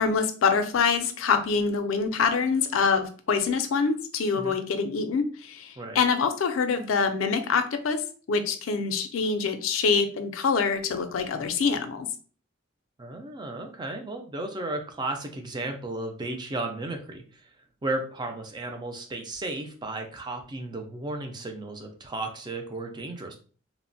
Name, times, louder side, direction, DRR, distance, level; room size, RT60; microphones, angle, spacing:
voice 1, 0.0-8.0 8.3-12.1, left 5 dB, 80° left, 8 dB, 0.4 m, -25 dB
voice 2, 13.0-17.5 17.8-23.4, right 2 dB, 20° right, 4 dB, 0.4 m, -34 dB
3.0 x 2.0 x 2.6 m, 0.40 s
head